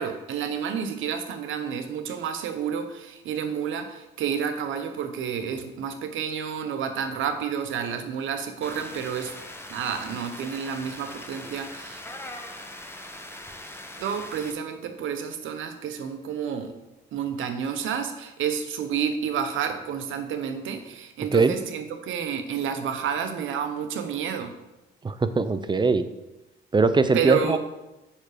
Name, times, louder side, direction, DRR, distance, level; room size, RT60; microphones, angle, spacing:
voice 1, 0.0-9.3 9.7-12.0 14.0-16.7 17.1-24.5 27.1-27.6, right 7 dB, 80° right, 8 dB, 1.0 m, -30 dB
sound 1, 8.6-14.5, left 1 dB, 10° left, 1.0 m, -41 dB
voice 2, 25.0-26.0 26.7-27.6, right 4 dB, 25° right, 12 dB, 0.6 m, -21 dB
7.2 x 5.9 x 5.0 m, 0.99 s
cardioid pair, 90°, 20 cm